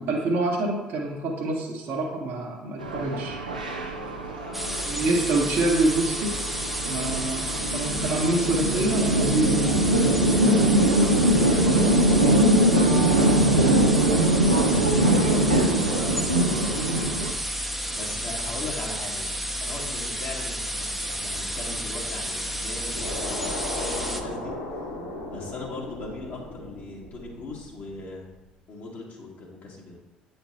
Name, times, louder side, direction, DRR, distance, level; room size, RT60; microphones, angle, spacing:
voice 1, 0.0-3.4 4.9-6.5 6.9-9.6, right 2 dB, 55° right, -1 dB, 1.0 m, -26 dB
sound 1, 2.8-17.3, right 1 dB, 90° right, 0.5 m, -22 dB
voice 2, 4.2-5.7 7.4-7.7 11.0-14.3 14.6-17.0 17.9-19.3 19.6-24.5 25.3-28.3 28.7-30.0, left 2 dB, 50° left, -4 dB, 1.9 m, -39 dB
sound 2, 4.5-24.2, equal, ahead, 0.8 m, -31 dB
sound 3, 22.9-28.2, left 1 dB, 85° left, 1.1 m, -36 dB
9.0 x 4.3 x 2.8 m, 1.2 s
figure-of-eight pair, 55°, 4 cm